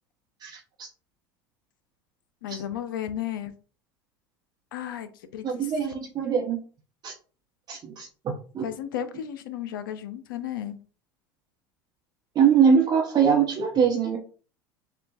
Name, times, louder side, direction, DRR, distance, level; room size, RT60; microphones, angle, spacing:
voice 1, 0.4-0.9 2.5-2.6 5.4-6.6 7.0-7.1 7.7-8.7 12.3-14.2, right 7 dB, 40° right, -1 dB, 0.9 m, -23 dB
voice 2, 2.4-3.5 4.7-5.7 8.6-10.8, left 10 dB, 80° left, 10 dB, 0.6 m, -34 dB
6.8 x 2.3 x 2.4 m, 0.39 s
hypercardioid pair, 85°, 11 cm